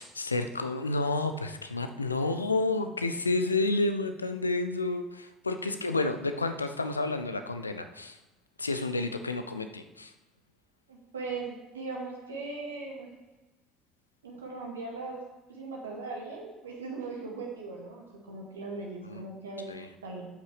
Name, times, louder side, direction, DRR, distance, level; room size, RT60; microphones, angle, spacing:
voice 1, 0.0-8.2 8.6-10.1 19.0-19.2 19.7-19.9, left 2 dB, 85° left, 8 dB, 0.5 m, -30 dB
voice 2, 10.9-13.1 14.2-15.2 15.5-19.7 20.0-20.3, right 3 dB, 75° right, -1 dB, 1.9 m, -39 dB
11.5 x 8.3 x 3.2 m, 1.1 s
figure-of-eight pair, 60°, 0 cm